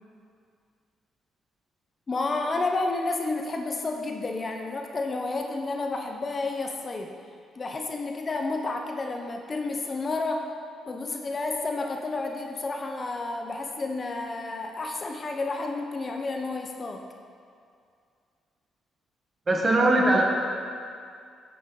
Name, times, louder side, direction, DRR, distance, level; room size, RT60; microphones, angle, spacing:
voice 1, 2.1-7.1 7.6-10.4 10.9-17.0, left 3 dB, 35° left, 3 dB, 0.7 m, -30 dB
voice 2, 19.5-20.2, right 1 dB, 30° right, 0 dB, 1.4 m, -20 dB
8.7 x 6.9 x 3.8 m, 2.3 s
cardioid pair, 90°, 0 cm